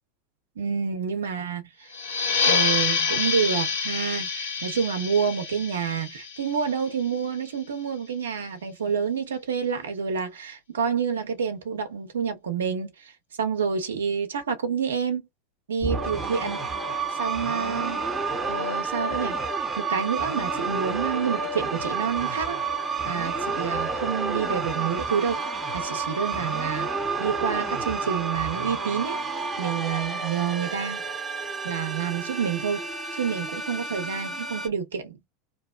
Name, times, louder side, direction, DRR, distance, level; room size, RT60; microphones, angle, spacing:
voice 1, 0.6-1.9 2.4-12.9 13.4-15.2 15.7-16.6 17.1-18.1 18.5-19.3 19.8-22.6 23.1-25.4 25.7-26.9 27.2-29.2 29.6-31.0 31.6-32.8 33.1-35.2, right 6 dB, 80° right, 0.8 m, -28 dB
sound 1, 1.9-7.2, left 5 dB, 70° left, 1.5 m, -27 dB
sound 2, 15.8-34.7, right 4 dB, 20° right, 0.9 m, -30 dB
2.9 x 2.1 x 2.3 m
hypercardioid pair, 85°, 0 cm